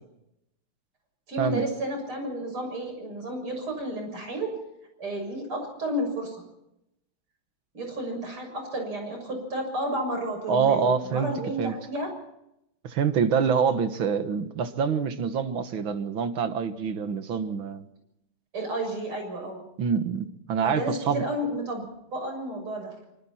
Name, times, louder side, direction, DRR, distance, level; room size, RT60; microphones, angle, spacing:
voice 1, 1.3-4.5 5.0-6.4 7.7-12.1 18.5-19.6 20.6-21.8 22.1-23.0, right 1 dB, 85° right, 3 dB, 7.7 m, -32 dB
voice 2, 10.5-11.3 11.6-11.7 12.8-17.9 19.8-21.2, right 6 dB, 70° right, 9 dB, 2.3 m, -26 dB
25.5 x 25.0 x 4.4 m, 0.83 s
omnidirectional pair, 2.3 m